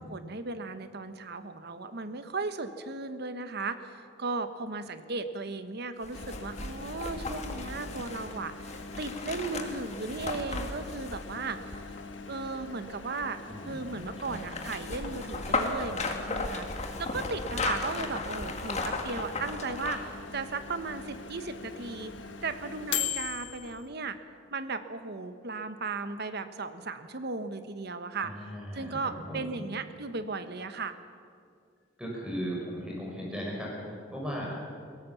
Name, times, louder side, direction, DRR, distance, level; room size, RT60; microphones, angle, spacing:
voice 1, 0.0-11.8 12.3-13.4 13.6-22.1 22.4-24.2 24.5-28.3 28.7-31.0, right 3 dB, 60° right, 10 dB, 1.2 m, -36 dB
sound 1, 6.0-12.2 13.9-20.2 20.6-20.7, left 3 dB, 35° left, 2.0 m, -35 dB
Microwave oven, 6.1-23.9, left 6 dB, 75° left, 1.5 m, -42 dB
voice 2, 13.5-14.4 28.2-29.6 32.0-34.6, equal, 5° right, -3 dB, 5.3 m, -37 dB
22.0 x 17.5 x 7.0 m, 2.2 s
head